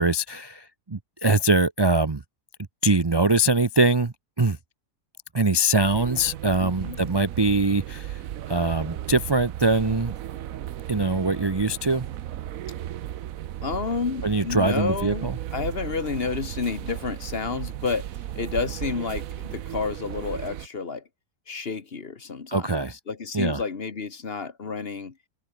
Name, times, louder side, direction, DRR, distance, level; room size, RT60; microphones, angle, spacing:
voice 1, 0.0-2.2 2.8-4.6 5.3-8.2 8.5-10.1 10.9-12.1 14.2-15.4 22.5-22.9 23.3-23.6, right 2 dB, 25° right, 0.5 m, -23 dB
sound 1, 5.8-20.7, right 12 dB, 70° right, 1.1 m, -35 dB
voice 2, 6.6-7.0 13.6-15.3 15.5-18.1 18.3-21.0 21.5-22.7 23.1-25.1, left 5 dB, 40° left, 1.5 m, -30 dB
omnidirectional pair, 1.6 m